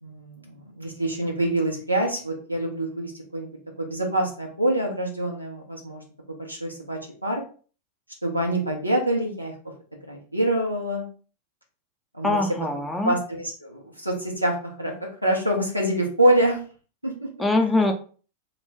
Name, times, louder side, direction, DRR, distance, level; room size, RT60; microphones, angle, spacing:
voice 1, 0.0-3.5 3.8-6.0 6.3-7.4 8.2-9.5 10.1-11.1 12.1-12.4 12.7-16.6 17.0-17.3, right 1 dB, 90° right, -1 dB, 0.8 m, -26 dB
voice 2, 12.2-13.1 17.4-17.9, left 2 dB, 5° left, 2 dB, 0.5 m, -22 dB
2.4 x 2.1 x 3.5 m, 0.40 s
figure-of-eight pair, 90°, 0 cm